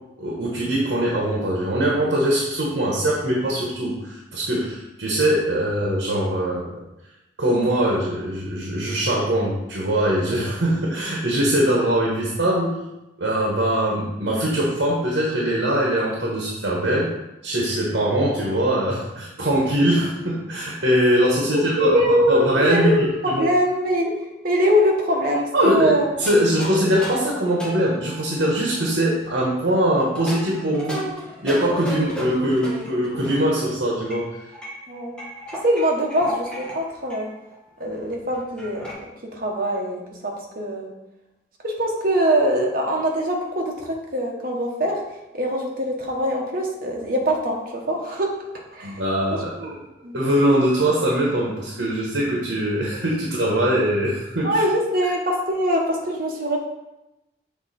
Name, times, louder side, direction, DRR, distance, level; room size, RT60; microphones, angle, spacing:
voice 1, 0.2-6.7 7.4-12.7 13.2-17.1 17.4-22.0 22.3-22.9 23.3-23.4 25.5-25.9 26.2-31.0 31.4-34.3 48.8-49.5 50.1-54.6, right 1 dB, 70° right, -3 dB, 1.3 m, -22 dB
voice 2, 21.5-24.1 24.4-26.1 34.9-35.2 35.6-36.5 36.7-37.3 37.8-40.9 41.6-45.0 45.3-48.3 48.7-49.0 49.6-49.8 50.0-50.1 54.4-56.6, equal, 50° right, 0 dB, 1.2 m, -23 dB
sound 1, 26.2-29.3 29.9-33.5 34.0-36.8 37.1-37.2 37.5-37.6 37.8-38.9, right 1 dB, 5° left, 1.4 m, -34 dB
7.2 x 3.6 x 4.3 m, 0.95 s
head